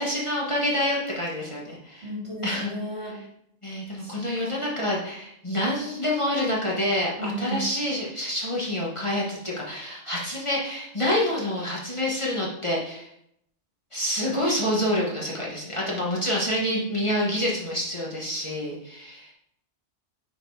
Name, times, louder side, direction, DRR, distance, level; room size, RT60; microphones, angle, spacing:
voice 1, 0.0-2.1 2.4-2.7 3.6-13.1 13.9-19.3, left 1 dB, 25° left, -5 dB, 1.5 m, -27 dB
voice 2, 2.0-3.2 4.0-4.5 7.2-7.6, right 1 dB, 65° right, -4 dB, 2.6 m, -34 dB
6.6 x 4.5 x 4.8 m, 0.76 s
omnidirectional pair, 1.2 m